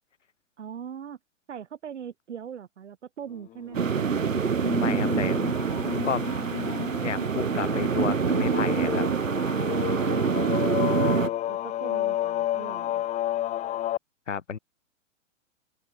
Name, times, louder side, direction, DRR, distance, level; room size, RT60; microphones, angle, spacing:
voice 1, 0.6-1.2 1.5-4.0 9.7-10.2 10.6-13.0, right 8 dB, 65° right, 4.8 m, -41 dB
sound 1, 3.7-14.0, left 13 dB, 20° left, 1.1 m, -31 dB
sound 2, 3.7-11.3, right 6 dB, 90° right, 0.7 m, -26 dB
voice 2, 4.7-5.4 5.7-6.4 7.0-9.1 14.3-14.6, left 6 dB, 70° left, 6.1 m, -32 dB
open air
figure-of-eight pair, 110°, 38 cm